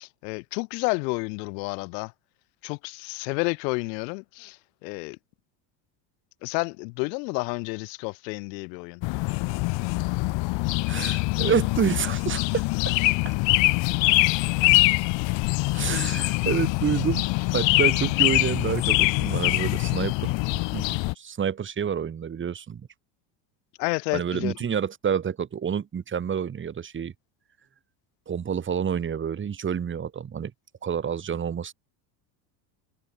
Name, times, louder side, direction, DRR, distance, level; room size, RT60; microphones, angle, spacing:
voice 1, 0.0-2.1 2.6-5.2 6.4-9.0 23.8-24.5, left 30 dB, 80° left, 1.7 m, -30 dB
sound 1, 9.0-21.1, left 24 dB, 60° left, 1.5 m, -24 dB
voice 2, 10.9-13.0 13.2-13.4 15.7-17.3 17.5-22.9 24.1-27.1 28.3-30.5 30.8-31.7, right 7 dB, 25° right, 1.5 m, -28 dB
supercardioid pair, 115°, 49 cm